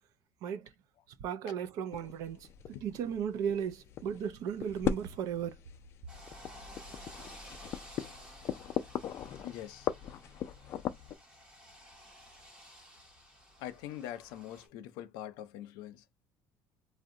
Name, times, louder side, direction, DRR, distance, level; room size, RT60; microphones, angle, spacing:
voice 1, 0.4-0.7 1.2-2.5 2.8-5.6, right 8 dB, 55° right, 0.4 m, -35 dB
sound 1, 1.9-11.1, left 9 dB, 35° left, 0.3 m, -39 dB
sound 2, 6.1-14.7, equal, 10° right, 0.7 m, -53 dB
voice 2, 9.4-9.9 13.6-16.0, left 12 dB, 90° left, 0.6 m, -43 dB
2.6 x 2.0 x 3.7 m
cardioid pair, 175°, 7 cm